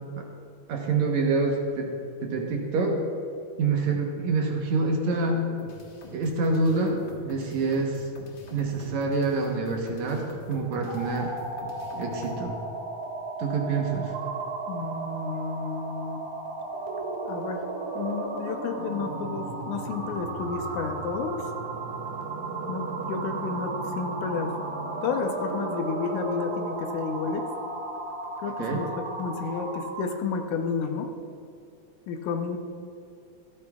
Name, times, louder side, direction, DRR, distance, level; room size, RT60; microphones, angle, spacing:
voice 1, 0.7-3.0 3.6-5.5 6.1-8.1 8.5-11.3 12.0-12.6 13.4-14.1 28.6-28.8, right 3 dB, 65° right, 1 dB, 2.3 m, -26 dB
sound 1, 5.6-12.4, left 1 dB, 55° left, 1.5 m, -45 dB
sound 2, 10.8-30.2, right 3 dB, 90° right, 2.9 m, -34 dB
voice 2, 14.7-16.2 17.3-17.6 18.0-21.5 22.7-24.5 25.0-27.5 28.4-31.1 32.1-32.6, left 5 dB, 75° left, 5 dB, 2.1 m, -31 dB
25.5 x 8.5 x 2.4 m, 2.5 s
omnidirectional pair, 3.7 m